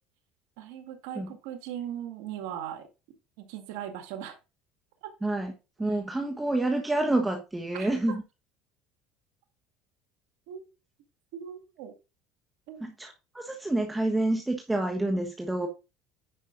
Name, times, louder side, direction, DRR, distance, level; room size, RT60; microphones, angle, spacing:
voice 1, 0.6-2.9 3.4-4.4 5.0-5.1 7.7-7.9 10.5-10.6 11.3-11.9 12.7-12.9, right 10 dB, 80° right, 1.9 m, -39 dB
voice 2, 5.2-5.5 5.8-8.2 12.8-15.7, right 2 dB, 10° right, 1.4 m, -28 dB
9.8 x 5.5 x 4.0 m
supercardioid pair, 105°, 0 cm